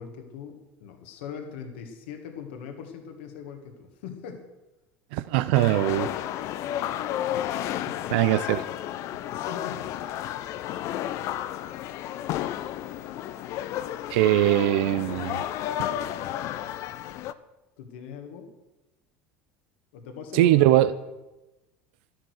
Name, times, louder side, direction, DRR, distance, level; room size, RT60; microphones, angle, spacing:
voice 1, 0.0-4.4 7.9-8.2 9.3-9.9 17.8-18.5 19.9-20.7, left 7 dB, 80° left, 4 dB, 1.9 m, -40 dB
voice 2, 5.1-6.1 8.1-8.6 14.1-15.4 20.3-20.9, right 14 dB, 75° right, 14 dB, 0.6 m, -21 dB
sound 1, 5.5-17.3, left 12 dB, 60° left, 0.7 m, -32 dB
12.5 x 11.5 x 6.5 m, 1.0 s
supercardioid pair, 95°, 6 cm